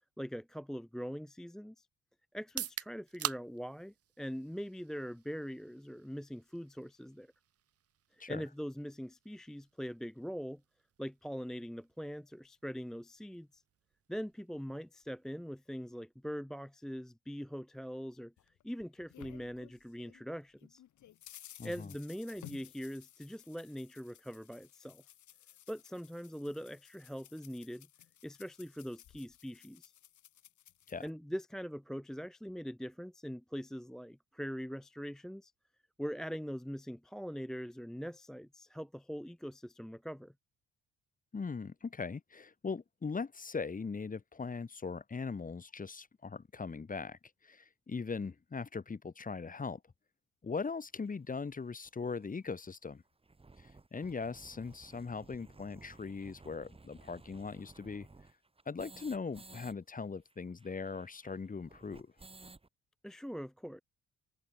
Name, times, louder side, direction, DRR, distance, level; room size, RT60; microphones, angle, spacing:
voice 1, 0.2-1.9 2.3-7.3 8.1-10.6 11.0-13.6 14.1-18.3 18.6-20.8 21.6-25.0 25.7-27.9 28.2-29.9 31.0-35.5 36.0-40.3 63.0-63.8, equal, ahead, 0.5 m, -42 dB
sound 1, 2.4-16.3, right 10 dB, 50° right, 0.9 m, -49 dB
sound 2, 18.4-20.2 20.6-31.1, left 12 dB, 70° left, 3.2 m, -57 dB
voice 2, 21.6-21.9 30.9-31.1 41.3-47.2 47.4-49.8 50.4-53.0 53.9-58.1 58.7-62.1, left 4 dB, 25° left, 1.8 m, -40 dB
sound 3, 51.1-51.2 51.8-51.9 52.2-52.3 52.6-52.7 53.1-59.7 60.0-60.1 60.3-62.7, right 3 dB, 20° right, 2.4 m, -56 dB
cardioid pair, 90°, 30 cm